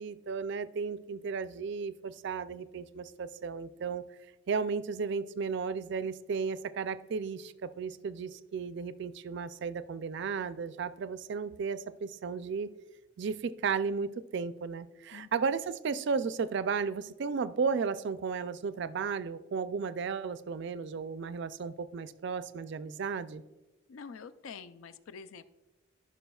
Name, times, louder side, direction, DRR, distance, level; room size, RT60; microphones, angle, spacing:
voice 1, 0.0-4.0 4.5-12.7 13.2-23.4, right 5 dB, 55° right, 14 dB, 0.3 m, -34 dB
voice 2, 23.9-25.4, left 6 dB, 75° left, 13 dB, 0.4 m, -46 dB
14.5 x 6.0 x 2.3 m, 1.1 s
head